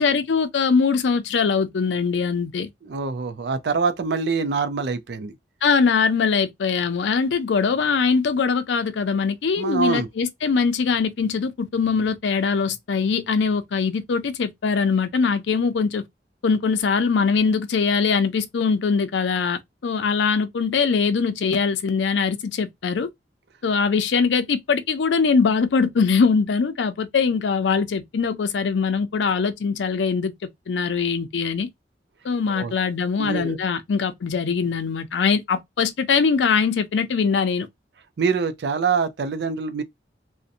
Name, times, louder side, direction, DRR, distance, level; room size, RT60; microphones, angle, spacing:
voice 1, 0.0-2.7 5.6-16.0 16.4-23.1 23.6-30.3 30.7-31.7 32.2-37.7, left 5 dB, 90° left, 0.4 m, -22 dB
voice 2, 2.8-5.3 9.6-10.1 32.5-32.7 33.2-33.6 38.2-39.8, right 5 dB, 70° right, 0.4 m, -24 dB
2.6 x 2.1 x 2.5 m
head